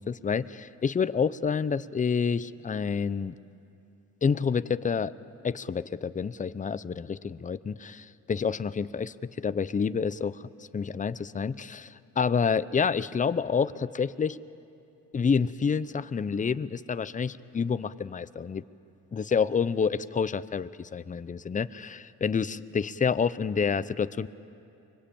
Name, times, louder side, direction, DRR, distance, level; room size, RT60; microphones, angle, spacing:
voice 1, 0.0-3.3 4.2-5.1 5.4-14.4 15.1-18.6 19.1-24.3, left 6 dB, 25° left, 15 dB, 0.6 m, -28 dB
24.5 x 22.5 x 8.6 m, 2.7 s
cardioid pair, 90°, 30 cm